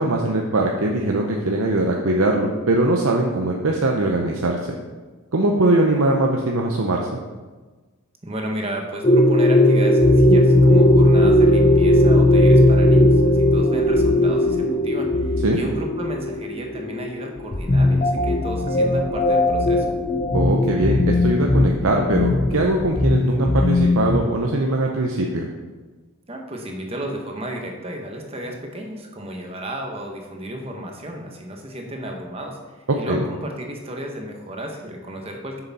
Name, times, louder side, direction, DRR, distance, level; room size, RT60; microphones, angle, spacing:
voice 1, 0.0-4.6 5.3-7.2 15.4-15.6 20.3-25.5 33.1-33.2, right 2 dB, 70° right, 0 dB, 0.7 m, -21 dB
voice 2, 8.2-19.9 26.3-35.6, right 1 dB, 25° right, 1 dB, 1.0 m, -33 dB
sound 1, 9.0-24.2, left 1 dB, 25° left, 0.6 m, -17 dB
7.0 x 6.7 x 4.1 m, 1.3 s
head